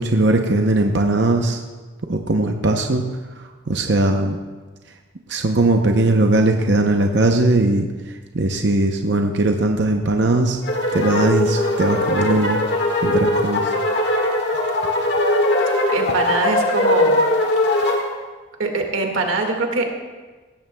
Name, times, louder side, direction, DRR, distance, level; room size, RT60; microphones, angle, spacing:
voice 1, 0.0-1.6 2.1-3.1 3.7-4.4 5.3-7.9 8.3-10.6 10.9-12.6 13.0-13.6, right 2 dB, 60° right, 3 dB, 0.7 m, -19 dB
sound 1, 10.6-18.0, left 1 dB, 55° left, 1.7 m, -20 dB
voice 2, 15.6-17.2 17.7-18.0 18.6-19.9, right 3 dB, 85° right, 2 dB, 1.8 m, -23 dB
17.0 x 14.0 x 2.3 m, 1.3 s
head